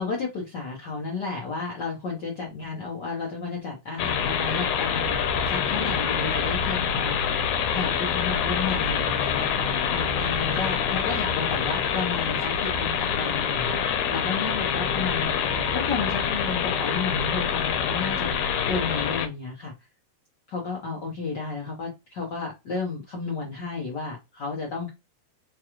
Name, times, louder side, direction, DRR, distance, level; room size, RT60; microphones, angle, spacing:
voice 1, 0.0-7.3 7.7-15.3 15.7-18.3 18.7-19.7 20.5-24.9, left 4 dB, 75° left, -2 dB, 1.0 m, -32 dB
sound 1, 4.0-19.3, left 7 dB, 90° left, 2.1 m, -26 dB
4.6 x 2.4 x 3.0 m, 0.23 s
omnidirectional pair, 3.4 m